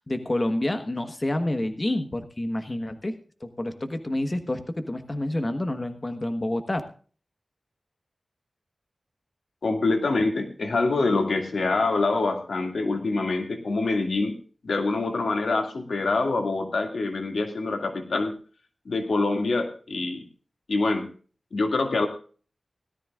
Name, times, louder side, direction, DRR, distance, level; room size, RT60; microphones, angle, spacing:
voice 1, 0.1-6.8, left 1 dB, 30° left, 7 dB, 1.3 m, -28 dB
voice 2, 9.6-14.4 14.6-18.3 18.9-20.2 20.7-21.1 21.5-22.1, left 3 dB, 85° left, 4 dB, 2.2 m, -25 dB
18.0 x 13.0 x 2.5 m, 0.40 s
wide cardioid pair, 75°, 0 cm